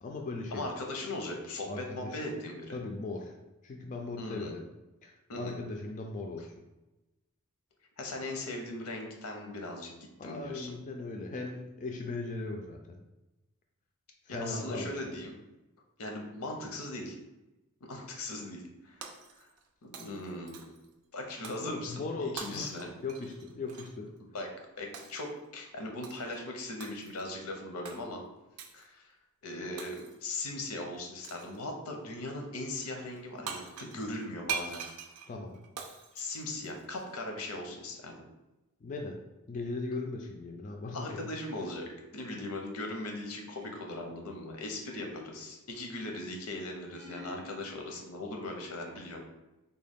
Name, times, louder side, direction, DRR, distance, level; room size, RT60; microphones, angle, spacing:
voice 1, 0.0-0.7 1.7-2.2 2.7-3.3 3.6-4.7 5.0-5.1 5.4-6.5 10.2-13.0 14.3-15.2 21.6-22.7 23.0-24.1 35.3-35.6 36.1-36.3 38.8-39.2 39.5-41.2, left 3 dB, 35° left, 2 dB, 0.3 m, -38 dB
voice 2, 0.5-2.8 4.2-4.5 5.3-5.6 8.0-9.9 10.2-10.8 14.3-15.3 16.0-17.2 17.8-19.0 19.4-19.5 19.8-20.7 21.1-22.0 22.3-22.9 24.3-24.5 24.8-28.2 28.7-29.0 29.4-34.8 36.2-38.2 40.9-49.3, left 2 dB, 85° left, 2 dB, 0.7 m, -39 dB
Shatter, 19.0-19.7 19.9-20.9 21.4-21.7 22.4-23.9 24.9-25.3 26.0-26.4 26.8-27.3 27.8-28.0 28.6-28.9 29.8-30.3 31.2-31.6 33.2-33.3 33.5-37.0, right 6 dB, 90° right, 0.5 m, -42 dB
sound 1, 43.6-44.1 44.8-45.7 46.9-47.7, left 3 dB, 15° right, 0.6 m, -50 dB
3.6 x 2.2 x 3.5 m, 1.0 s
head